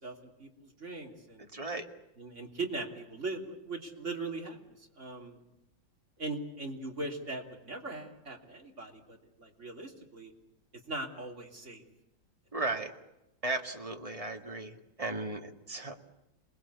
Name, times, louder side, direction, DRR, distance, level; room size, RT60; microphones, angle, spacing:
voice 1, 0.0-1.5 2.2-5.4 6.2-10.3 10.9-11.8, right 2 dB, 35° right, 2 dB, 3.5 m, -40 dB
voice 2, 1.5-1.9 12.5-12.9 13.4-15.9, right 2 dB, 20° right, 4 dB, 2.0 m, -36 dB
28.0 x 20.0 x 8.4 m, 0.92 s
omnidirectional pair, 2.1 m